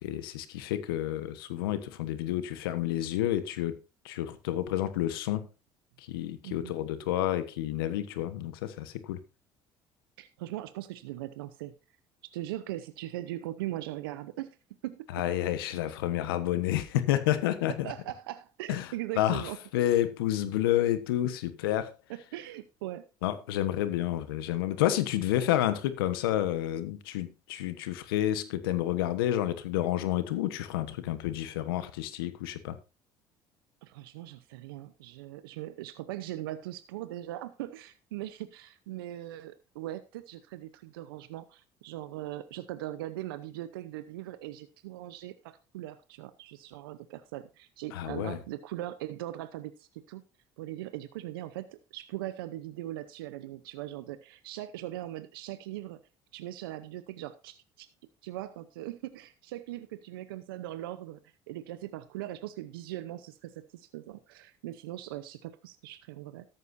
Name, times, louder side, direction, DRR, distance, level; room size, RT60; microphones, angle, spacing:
voice 1, 0.0-3.8 4.0-5.5 6.1-9.2 15.1-17.9 18.7-18.9 19.2-21.9 23.2-32.8 47.9-48.4, left 13 dB, 90° left, 1.2 m, -30 dB
voice 2, 10.2-11.7 12.3-14.6 14.8-15.1 17.8-19.6 22.1-23.1 33.8-50.2 50.6-56.0 56.3-57.9 58.2-61.2 61.5-66.5, right 14 dB, 90° right, 0.7 m, -40 dB
13.5 x 11.0 x 2.7 m
hypercardioid pair, 70°, 12 cm